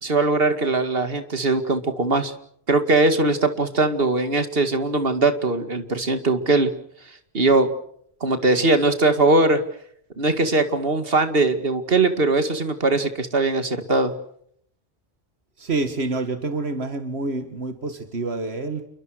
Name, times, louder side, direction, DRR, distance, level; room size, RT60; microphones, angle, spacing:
voice 1, 0.0-2.3 2.7-6.7 7.3-7.7 8.2-9.6 10.2-14.1, right 2 dB, 65° right, 9 dB, 2.5 m, -20 dB
voice 2, 15.6-18.9, right 3 dB, 85° right, 9 dB, 2.1 m, -27 dB
29.5 x 23.0 x 6.5 m, 0.68 s
omnidirectional pair, 1.0 m